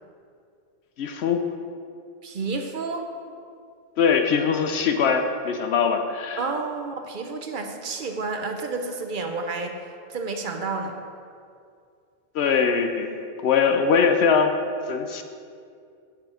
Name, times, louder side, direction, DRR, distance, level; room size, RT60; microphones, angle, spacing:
voice 1, 1.0-1.4 4.0-6.4 12.3-14.5 14.9-15.2, left 6 dB, 65° left, 5 dB, 0.8 m, -22 dB
voice 2, 2.2-3.1 6.4-11.0, right 3 dB, 50° right, 5 dB, 0.7 m, -30 dB
8.5 x 6.2 x 4.8 m, 2.4 s
omnidirectional pair, 1.2 m